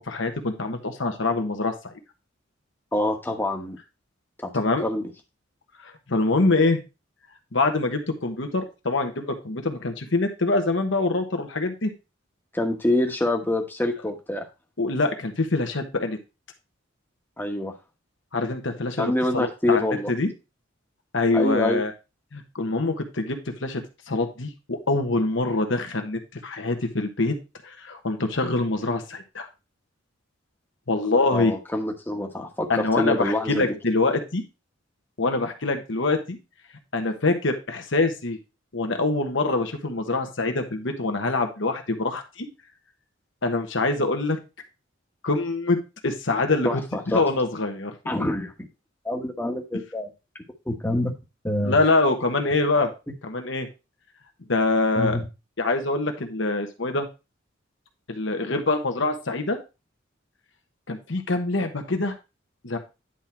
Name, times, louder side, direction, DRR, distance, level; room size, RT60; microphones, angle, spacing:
voice 1, 0.1-1.9 4.5-4.8 5.8-6.8 7.5-11.9 14.8-16.2 18.3-20.3 21.1-21.9 22.3-23.8 24.1-27.3 27.6-29.5 30.9-31.5 32.7-34.4 35.2-36.4 36.9-38.4 38.7-42.5 43.4-44.4 45.2-45.8 46.0-46.8 47.1-47.9 51.6-52.9 53.2-53.7 54.5-55.2 55.6-57.1 58.1-59.6 60.9-62.1 62.6-62.8, left 2 dB, 65° left, 5 dB, 1.3 m, -24 dB
voice 2, 2.9-3.8 4.8-5.0 12.5-14.5 17.4-17.7 19.0-20.1 21.3-21.8 31.3-33.7 46.6-47.2 48.1-48.5 49.0-50.1 50.7-51.1 51.4-51.8 54.9-55.3, left 1 dB, 10° left, 3 dB, 1.2 m, -26 dB
10.0 x 3.8 x 4.3 m, 0.28 s
head